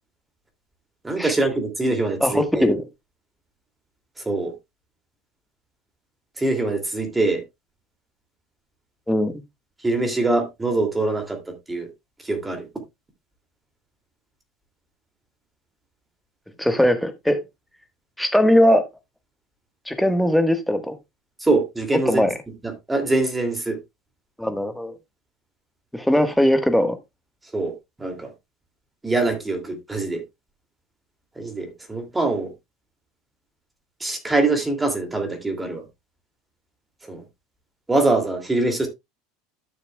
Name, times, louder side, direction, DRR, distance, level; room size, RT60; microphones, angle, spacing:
voice 1, 1.0-2.7 4.2-4.5 6.4-7.4 9.8-11.9 12.2-12.7 21.4-22.3 22.6-23.8 27.5-27.7 28.0-28.3 29.0-30.2 31.4-32.5 34.0-35.8 37.0-37.2 37.9-38.9, right 2 dB, 10° right, 2.6 m, -23 dB
voice 2, 2.2-2.8 9.1-9.3 16.6-17.4 18.2-18.8 19.9-20.9 22.1-22.3 24.4-24.9 25.9-27.0, equal, 5° left, 1.5 m, -19 dB
12.5 x 6.8 x 2.3 m
figure-of-eight pair, 75°, 0 cm